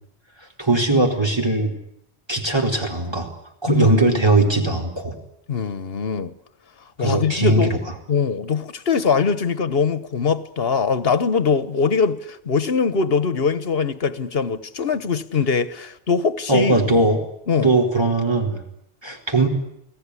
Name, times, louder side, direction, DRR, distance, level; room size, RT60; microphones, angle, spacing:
voice 1, 0.6-1.7 2.3-3.3 3.6-5.2 7.0-7.8 16.5-17.2 17.6-18.6 19.0-19.5, right 2 dB, 25° right, 4.4 m, -19 dB
voice 2, 3.7-4.5 5.5-6.3 7.0-7.8 8.1-16.9 17.5-17.7, left 5 dB, 65° left, 1.5 m, -22 dB
29.0 x 19.0 x 9.9 m
omnidirectional pair, 1.1 m